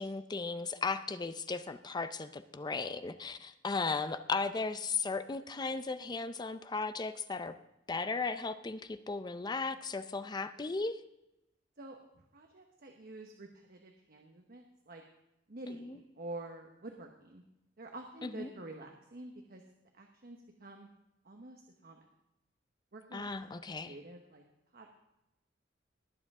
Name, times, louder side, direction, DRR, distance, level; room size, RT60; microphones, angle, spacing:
voice 1, 0.0-7.5 7.9-11.0 15.7-16.0 18.2-18.5 23.1-23.9, left 4 dB, 25° left, 12 dB, 0.5 m, -36 dB
voice 2, 11.8-15.0 15.5-17.4 17.8-19.6 19.9-20.9 21.2-22.1 22.9-24.4 24.7-24.9, right 2 dB, 55° right, 3 dB, 1.1 m, -48 dB
20.5 x 7.7 x 3.6 m, 0.89 s
head